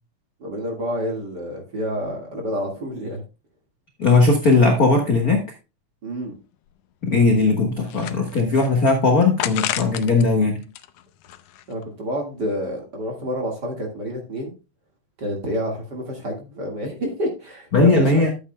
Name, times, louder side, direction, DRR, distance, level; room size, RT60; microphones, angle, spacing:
voice 1, 0.4-3.2 6.0-6.4 11.7-14.5 15.2-18.3, equal, 40° right, 1 dB, 2.1 m, -28 dB
voice 2, 4.0-5.4 7.0-10.6 17.7-18.3, left 3 dB, 50° left, 3 dB, 1.1 m, -18 dB
sound 1, 6.2-6.3 6.7-6.8 7.3-8.7 9.4-10.3 10.6-11.8, left 12 dB, 80° left, 1.5 m, -31 dB
12.0 x 8.2 x 2.2 m, 0.29 s
omnidirectional pair, 3.5 m